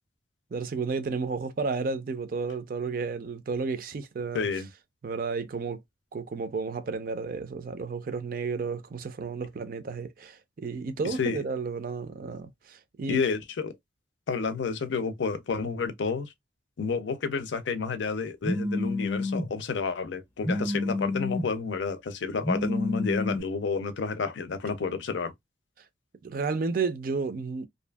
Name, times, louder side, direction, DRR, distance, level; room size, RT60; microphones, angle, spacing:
voice 1, 0.5-4.5 5.0-5.8 6.1-13.2 26.2-27.7, right 4 dB, 50° right, 0.4 m, -32 dB
voice 2, 4.3-4.7 11.0-11.4 13.1-13.7 14.3-16.3 16.8-25.3, left 5 dB, 80° left, 0.5 m, -30 dB
Telephone, 18.4-19.5 20.4-21.5 22.4-23.4, left 2 dB, 10° left, 0.5 m, -29 dB
2.6 x 2.4 x 2.2 m
head